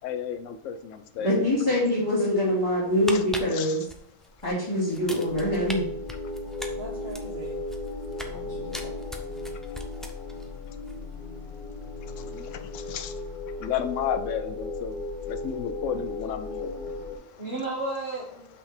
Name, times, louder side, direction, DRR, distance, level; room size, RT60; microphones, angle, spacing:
voice 1, 0.0-1.5 3.1-3.2 3.5-3.8 9.5-9.7 11.8-17.5, left 8 dB, 75° left, 9 dB, 1.0 m, -34 dB
voice 2, 1.2-3.8 4.4-5.9, left 1 dB, 20° left, -10 dB, 2.6 m, -24 dB
sound 1, 2.8-4.5 4.9-5.8 6.1-8.4 8.7-10.5 10.7-10.9, equal, ahead, 0.4 m, -39 dB
sound 2, 5.3-17.2, left 2 dB, 45° left, 0.8 m, -36 dB
voice 3, 6.7-7.7 8.2-9.0 17.4-18.5, right 2 dB, 55° right, -2 dB, 1.4 m, -36 dB
5.7 x 5.6 x 4.4 m, 0.68 s
omnidirectional pair, 1.3 m